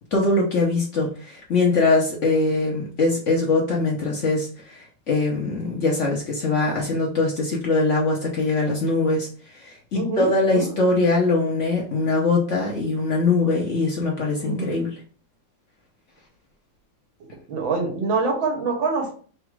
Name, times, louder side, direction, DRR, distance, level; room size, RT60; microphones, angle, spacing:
voice 1, 0.1-4.5 4.7-9.3 9.6-14.9, left 3 dB, 50° left, -2 dB, 0.9 m, -22 dB
voice 2, 9.9-10.7 14.4-14.8 17.5-19.1, right 3 dB, 85° right, 0 dB, 1.9 m, -25 dB
4.0 x 2.4 x 4.6 m, 0.43 s
omnidirectional pair, 2.1 m